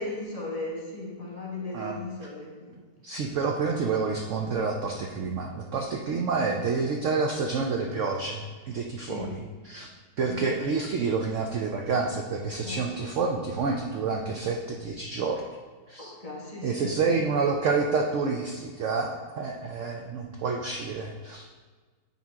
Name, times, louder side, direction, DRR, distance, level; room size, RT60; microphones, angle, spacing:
voice 1, 0.0-2.8 6.1-6.2 9.0-9.3 10.3-10.5 12.6-13.1 16.0-17.2, left 2 dB, 20° left, -5 dB, 1.4 m, -37 dB
voice 2, 3.0-9.3 9.7-9.9 10.2-15.4 15.9-16.1 16.6-21.5, right 4 dB, 85° right, 1 dB, 0.6 m, -28 dB
9.4 x 4.6 x 3.5 m, 1.5 s
omnidirectional pair, 2.0 m